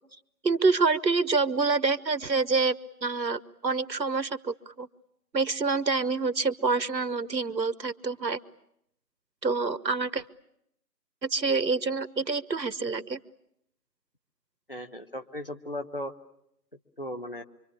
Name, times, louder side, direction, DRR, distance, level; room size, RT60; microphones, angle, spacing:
voice 1, 0.4-4.9 5.3-8.4 9.4-10.2 11.2-13.2, right 4 dB, 85° right, 14 dB, 1.3 m, -27 dB
voice 2, 14.7-16.1 17.0-17.4, left 1 dB, 35° left, 6 dB, 1.2 m, -36 dB
25.5 x 25.0 x 8.7 m, 0.76 s
figure-of-eight pair, 170°, 50 cm